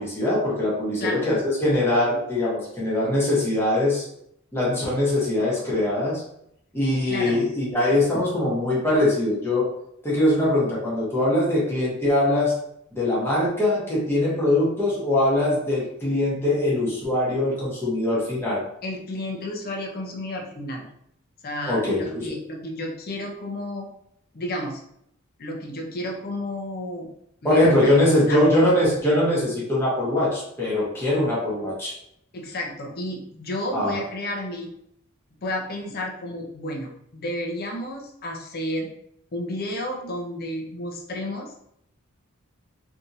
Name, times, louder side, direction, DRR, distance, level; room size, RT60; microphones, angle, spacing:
voice 1, 0.0-4.0 4.5-6.2 6.7-9.7 10.0-12.5 12.9-18.6 21.7-22.3 27.4-31.9 33.7-33.9, left 1 dB, 10° left, -7 dB, 1.0 m, -22 dB
voice 2, 1.0-1.3 7.1-7.4 18.8-20.8 21.4-23.9 24.3-24.8 25.4-27.1 27.4-28.0 28.3-28.4 32.3-34.7 35.4-38.9 39.3-41.5, left 1 dB, 45° left, 1 dB, 0.6 m, -31 dB
3.4 x 2.8 x 2.6 m, 0.73 s
head